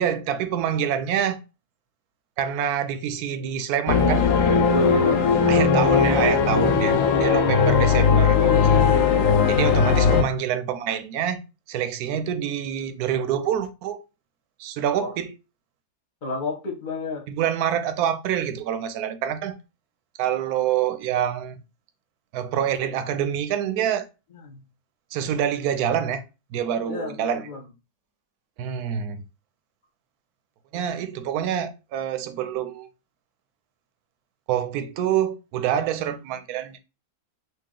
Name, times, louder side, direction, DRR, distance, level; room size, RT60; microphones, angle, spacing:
voice 1, 0.0-1.4 2.4-4.3 5.5-8.8 9.5-11.4 11.7-14.0 14.6-15.3 17.3-19.6 20.2-21.5 22.3-24.1 25.1-26.2 26.5-27.5 28.6-29.2 30.7-32.9 34.5-36.8, right 9 dB, 85° right, 1.1 m, -26 dB
sound 1, 3.9-10.2, left 5 dB, 65° left, 0.9 m, -18 dB
voice 2, 4.7-5.3 15.0-15.2 16.2-17.2 24.4-24.6 26.9-27.7, left 4 dB, 40° left, 0.9 m, -32 dB
3.0 x 2.7 x 3.6 m
omnidirectional pair, 1.6 m